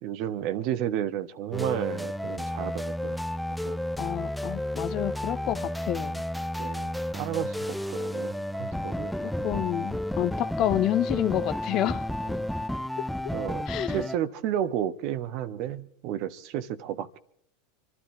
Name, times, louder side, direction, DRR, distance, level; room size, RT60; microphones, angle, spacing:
voice 1, 0.0-3.2 3.6-3.8 6.6-9.6 12.2-12.5 13.3-13.7 13.9-17.2, right 10 dB, 55° right, 1.2 m, -32 dB
sound 1, 1.5-14.2, left 1 dB, ahead, 0.6 m, -32 dB
voice 2, 4.0-6.2 9.2-12.0 13.0-13.1 13.7-14.0, left 13 dB, 45° left, 0.8 m, -29 dB
26.5 x 12.5 x 3.8 m
hypercardioid pair, 90°, 0 cm